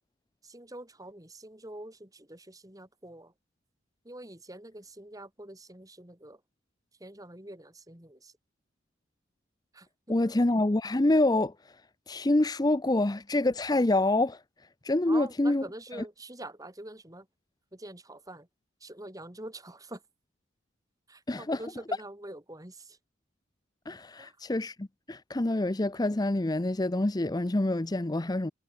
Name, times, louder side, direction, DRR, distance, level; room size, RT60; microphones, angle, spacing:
voice 1, 0.4-3.3 4.0-6.4 7.0-8.3 9.7-10.2 15.1-17.2 17.7-18.5 18.8-20.0 21.1-22.9 24.2-24.3, right 1 dB, 20° right, 3.4 m, -45 dB
voice 2, 10.1-11.7 12.1-14.4 14.8-15.7 15.9-16.0 21.3-21.7 23.9-28.5, left 2 dB, 20° left, 0.6 m, -26 dB
head